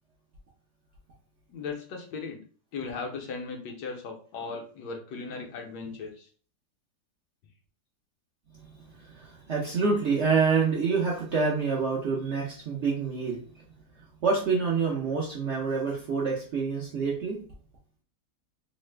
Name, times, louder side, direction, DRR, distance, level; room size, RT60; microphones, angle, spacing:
voice 1, 1.5-2.4 2.7-6.3, left 4 dB, 75° left, 3 dB, 1.1 m, -37 dB
voice 2, 8.9-13.4 14.2-17.4, right 5 dB, 65° right, -4 dB, 0.7 m, -27 dB
3.1 x 2.1 x 3.2 m, 0.42 s
omnidirectional pair, 1.9 m